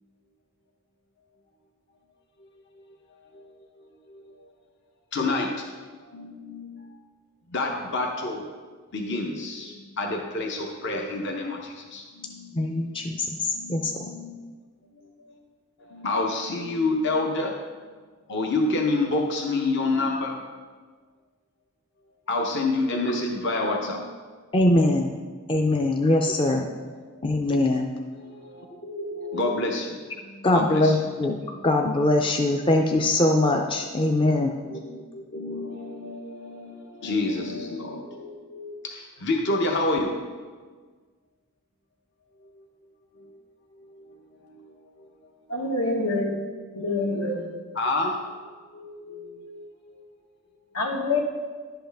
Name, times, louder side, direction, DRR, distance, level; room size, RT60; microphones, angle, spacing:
voice 1, 3.3-4.3 5.1-5.7 6.0-7.0 7.5-8.5 8.9-14.5 15.0-15.3 15.8-17.6 18.3-20.4 22.3-24.1 28.1-30.0 30.3-31.0 31.5-31.6 34.7-40.2 42.4-42.6 43.2-43.4 43.8-44.6 45.0-45.1 47.1-47.2 47.7-48.4 48.7-50.0, left 2 dB, 55° left, 1 dB, 0.8 m, -29 dB
voice 2, 12.5-13.9 24.5-25.1 25.5-26.7 27.2-27.9 30.4-31.4 31.6-34.5, left 2 dB, 20° left, 2 dB, 0.5 m, -22 dB
voice 3, 45.5-46.4 46.7-47.5 50.7-51.2, left 2 dB, 75° left, 1 dB, 1.5 m, -26 dB
11.0 x 7.8 x 3.4 m, 1.5 s
head